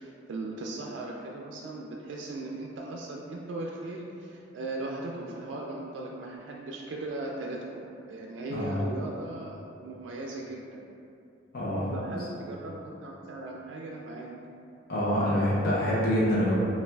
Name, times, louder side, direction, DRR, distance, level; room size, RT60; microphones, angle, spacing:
voice 1, 0.0-10.8 11.9-14.3, right 2 dB, 80° right, -1 dB, 0.3 m, -38 dB
voice 2, 11.5-12.1 14.9-16.5, equal, 55° left, -7 dB, 0.7 m, -26 dB
5.4 x 2.3 x 2.3 m, 2.6 s
head